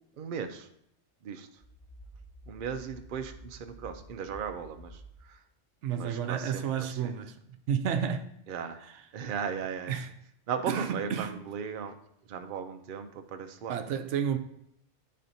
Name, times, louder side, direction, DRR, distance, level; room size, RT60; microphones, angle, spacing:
voice 1, 0.2-0.7 1.2-1.5 2.5-5.0 5.9-7.1 8.5-8.8 9.1-9.9 10.5-11.9 12.3-13.8, right 7 dB, 55° right, 0.7 m, -36 dB
sound 1, 1.6-5.2, right 1 dB, 25° left, 1.8 m, -50 dB
voice 2, 5.8-7.4 7.7-8.3 8.8-9.1 9.9-10.1 10.7-11.4 13.7-14.4, right 8 dB, 85° right, 0.9 m, -31 dB
10.5 x 4.2 x 2.7 m
omnidirectional pair, 1.2 m